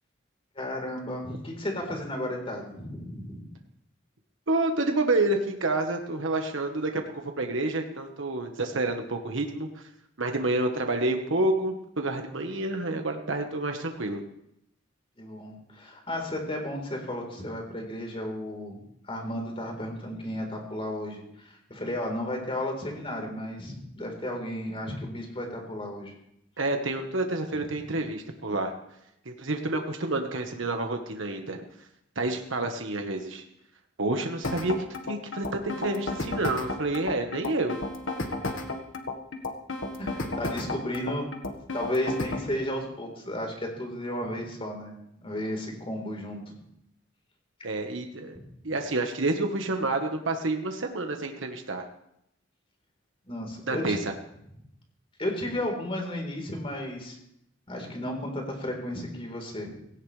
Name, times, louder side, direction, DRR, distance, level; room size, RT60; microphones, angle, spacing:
voice 1, 0.6-3.4 15.2-18.8 19.0-26.1 40.0-41.3 41.7-44.9 45.2-46.4 47.6-47.7 53.3-54.0 55.2-57.2 57.7-59.7, left 1 dB, 30° left, 2 dB, 4.1 m, -33 dB
voice 2, 4.5-9.8 10.2-14.2 26.6-28.7 29.2-31.6 32.1-33.4 34.0-37.8 47.6-48.4 48.6-51.8 53.7-54.1, right 2 dB, 75° right, 4 dB, 1.4 m, -29 dB
sound 1, 34.4-42.5, left 2 dB, 90° left, 1.6 m, -33 dB
18.5 x 17.5 x 3.4 m, 0.77 s
head